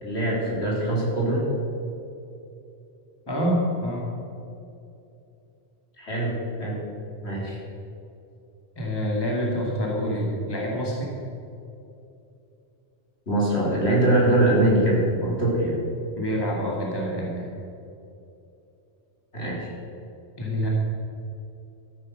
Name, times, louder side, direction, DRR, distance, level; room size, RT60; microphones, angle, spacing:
voice 1, 0.0-1.4 6.0-6.8 7.2-7.6 13.3-15.7 19.3-19.7, right 1 dB, 65° left, -5 dB, 3.9 m, -23 dB
voice 2, 3.3-4.1 8.8-11.1 16.2-17.5 20.4-20.7, equal, 20° left, -3 dB, 2.2 m, -27 dB
13.5 x 9.5 x 6.3 m, 2.7 s
omnidirectional pair, 1.2 m